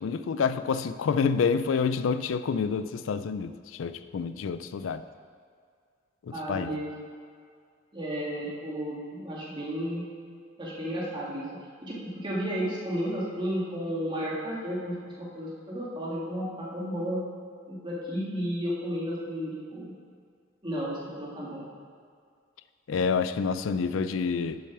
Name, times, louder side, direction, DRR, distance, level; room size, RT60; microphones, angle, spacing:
voice 1, 0.0-5.0 6.3-6.8 22.9-24.6, left 5 dB, 90° left, 12 dB, 0.4 m, -28 dB
voice 2, 6.3-6.9 7.9-10.0 10.6-11.5 11.8-17.2 17.7-19.9 20.6-21.7, equal, 25° right, -6 dB, 1.9 m, -33 dB
7.0 x 6.2 x 5.9 m, 2.2 s
head